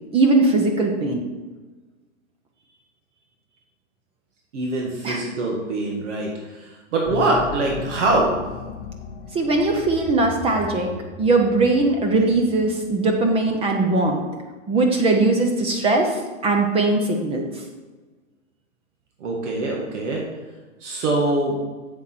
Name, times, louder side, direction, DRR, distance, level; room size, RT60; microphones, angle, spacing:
voice 1, 0.1-1.2 5.0-5.2 9.3-10.9 11.2-14.2 14.7-17.6, right 2 dB, 15° right, 2 dB, 0.7 m, -20 dB
voice 2, 4.5-8.4 19.2-20.2 20.8-21.6, right 2 dB, 65° right, -1 dB, 1.8 m, -23 dB
sound 1, 7.0-14.0, left 5 dB, 40° left, 1.3 m, -37 dB
7.7 x 7.2 x 4.4 m, 1.3 s
hypercardioid pair, 135°, 38 cm